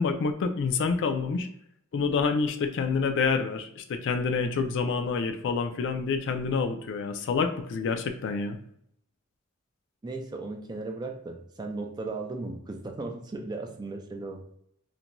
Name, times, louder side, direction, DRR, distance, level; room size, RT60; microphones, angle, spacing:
voice 1, 0.0-1.5 1.9-8.6, left 5 dB, 55° left, 7 dB, 0.3 m, -27 dB
voice 2, 10.0-14.4, right 3 dB, 20° right, 3 dB, 0.3 m, -36 dB
2.5 x 2.2 x 2.8 m, 0.70 s
head